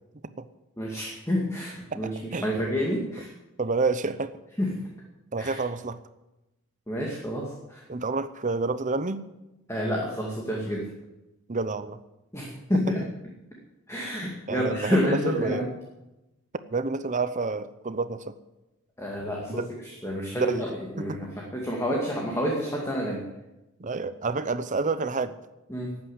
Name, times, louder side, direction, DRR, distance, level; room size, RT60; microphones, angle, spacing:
voice 1, 0.8-2.1 2.4-3.3 4.6-4.7 5.4-5.6 6.9-7.8 9.7-10.8 12.3-13.0 13.9-15.7 19.0-19.5 20.0-20.7 21.0-21.3 21.5-23.2 25.7-25.9, equal, 15° left, -2 dB, 2.2 m, -28 dB
voice 2, 1.9-2.5 3.6-4.3 5.3-6.0 7.9-9.3 11.5-12.0 12.7-12.8 14.5-15.7 16.7-18.4 19.5-19.7 20.4-21.2 23.8-25.3, right 3 dB, 35° right, 13 dB, 0.7 m, -29 dB
13.0 x 8.9 x 9.8 m, 0.97 s
head